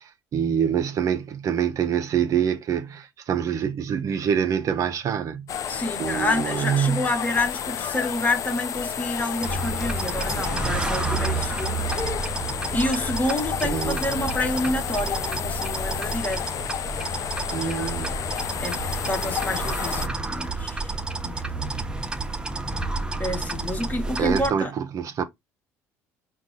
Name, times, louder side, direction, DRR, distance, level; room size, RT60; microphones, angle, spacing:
voice 1, 0.3-7.1 13.6-14.0 17.5-18.1 24.2-25.2, right 8 dB, 50° right, 0.6 m, -25 dB
sound 1, 5.5-20.1, left 8 dB, 50° left, 0.5 m, -31 dB
voice 2, 5.7-11.9 12.7-16.4 17.5-18.1 18.6-21.0 21.2-21.7 23.2-24.7, left 1 dB, 20° left, 1.3 m, -28 dB
sound 2, 9.4-24.5, right 3 dB, 10° right, 0.8 m, -30 dB
4.7 x 2.3 x 3.9 m
supercardioid pair, 75°, 7 cm